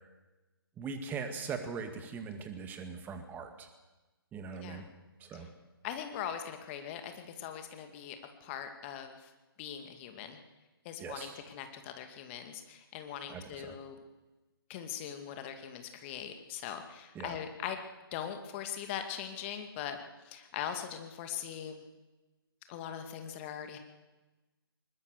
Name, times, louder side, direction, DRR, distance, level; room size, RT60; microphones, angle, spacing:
voice 1, 0.8-3.7 4.3-4.8 5.2-5.5 11.0-11.4 13.3-13.8 17.2-17.4, right 5 dB, 15° right, 7 dB, 2.0 m, -40 dB
voice 2, 5.8-9.2 9.6-10.4 10.8-14.0 14.7-17.8 18.1-20.0 20.2-21.8 22.7-23.8, left 9 dB, 30° left, 6 dB, 2.3 m, -41 dB
21.0 x 21.0 x 6.7 m, 1.2 s
figure-of-eight pair, 140°, 13 cm